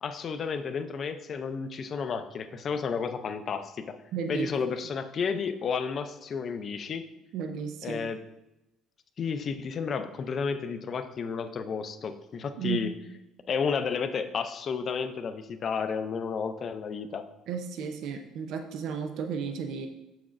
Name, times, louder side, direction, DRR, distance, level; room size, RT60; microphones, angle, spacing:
voice 1, 0.0-4.0 4.3-7.1 7.8-8.2 9.2-12.9 13.5-17.3, left 6 dB, 40° left, 9 dB, 0.5 m, -32 dB
voice 2, 4.1-4.5 7.3-8.0 12.6-12.8 17.5-19.9, right 6 dB, 70° right, 6 dB, 0.6 m, -33 dB
7.0 x 5.9 x 2.5 m, 0.95 s
cardioid pair, 115°, 0 cm